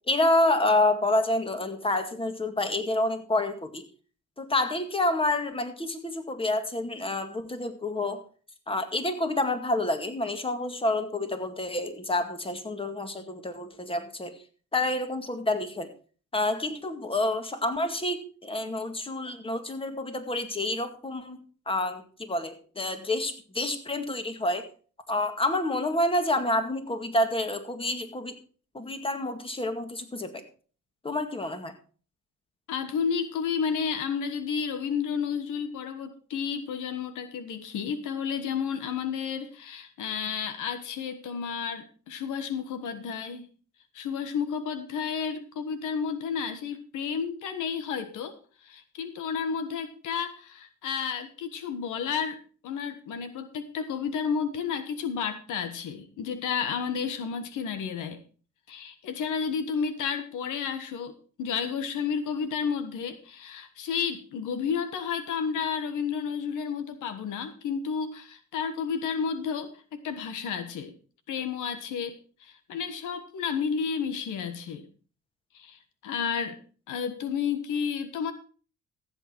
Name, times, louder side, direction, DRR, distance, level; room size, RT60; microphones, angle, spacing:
voice 1, 0.1-3.8 4.4-8.2 8.7-14.4 14.7-15.9 16.3-21.4 21.7-24.7 25.1-28.4 28.7-30.4 31.0-31.7, left 2 dB, 20° left, 7 dB, 2.1 m, -28 dB
voice 2, 32.7-43.5 43.9-48.4 48.6-52.4 52.6-58.2 58.7-70.9 71.3-74.8 75.5-76.6 76.9-78.3, left 6 dB, 85° left, 10 dB, 1.4 m, -31 dB
14.5 x 8.1 x 4.5 m, 0.40 s
cardioid pair, 90°, 30 cm